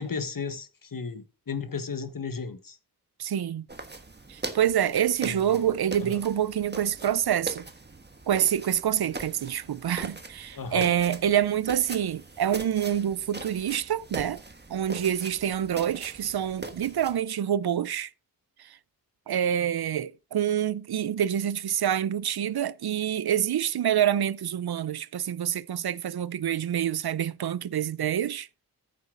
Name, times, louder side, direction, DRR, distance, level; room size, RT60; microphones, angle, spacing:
voice 1, 0.0-2.8 5.2-5.6 6.0-6.2 10.5-10.9, left 5 dB, 60° left, 1.4 m, -34 dB
voice 2, 3.2-3.7 4.3-7.6 8.3-14.4 14.7-18.1 18.6-18.8 19.3-28.5, right 10 dB, 85° right, 0.6 m, -27 dB
sound 1, 3.7-17.2, right 3 dB, 30° right, 1.4 m, -41 dB
14.0 x 6.8 x 3.8 m
wide cardioid pair, 85°, 37 cm